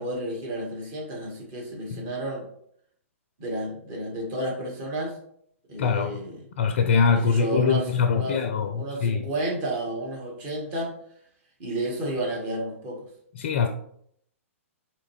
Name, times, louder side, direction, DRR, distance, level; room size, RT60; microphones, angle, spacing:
voice 1, 0.0-2.4 3.4-5.2 5.7-6.4 7.1-10.9 11.6-13.0, right 1 dB, 40° right, -2 dB, 1.5 m, -31 dB
voice 2, 5.8-6.2 6.6-9.2 13.4-13.7, left 5 dB, 55° left, 7 dB, 0.4 m, -23 dB
4.7 x 3.1 x 3.1 m, 0.69 s
figure-of-eight pair, 115°, 8 cm